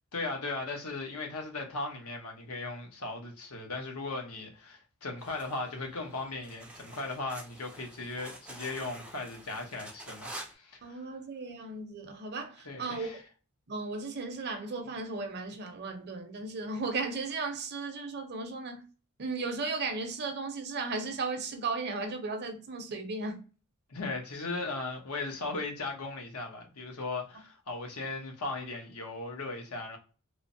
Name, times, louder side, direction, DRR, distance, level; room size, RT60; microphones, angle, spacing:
voice 1, 0.1-11.0 12.6-13.2 23.9-30.0, left 3 dB, 80° left, 0.8 m, -37 dB
sound 1, 5.2-10.5, right 1 dB, 5° right, 0.4 m, -48 dB
voice 2, 10.8-13.1 13.7-18.8 19.2-23.4, right 3 dB, 50° right, 0.6 m, -35 dB
3.1 x 2.0 x 2.6 m
head